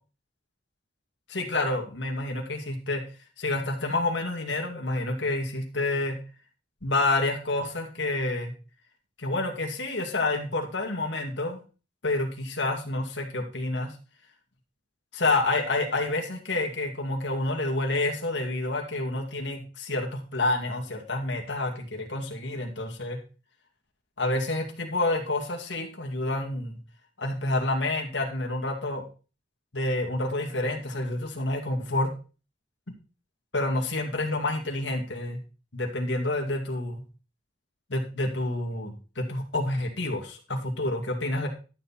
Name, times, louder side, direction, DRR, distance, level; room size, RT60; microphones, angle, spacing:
voice 1, 1.3-3.0 3.4-6.2 6.8-8.5 9.2-11.6 12.0-13.9 15.1-23.2 24.2-26.8 27.2-29.0 29.7-32.1 33.5-35.4 35.7-37.0 37.9-41.5, left 2 dB, 80° left, 1 dB, 2.4 m, -28 dB
12.0 x 8.1 x 4.3 m, 0.33 s
head